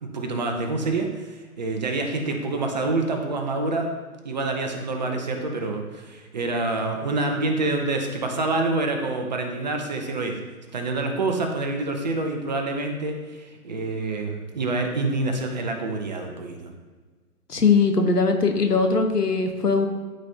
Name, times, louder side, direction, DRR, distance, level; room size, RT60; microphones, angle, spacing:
voice 1, 0.0-3.9 4.2-10.3 10.7-16.7, right 2 dB, 30° right, 3 dB, 0.7 m, -27 dB
voice 2, 17.5-19.9, left 4 dB, 90° left, 4 dB, 1.1 m, -20 dB
12.0 x 4.2 x 2.8 m, 1.4 s
figure-of-eight pair, 135°, 46 cm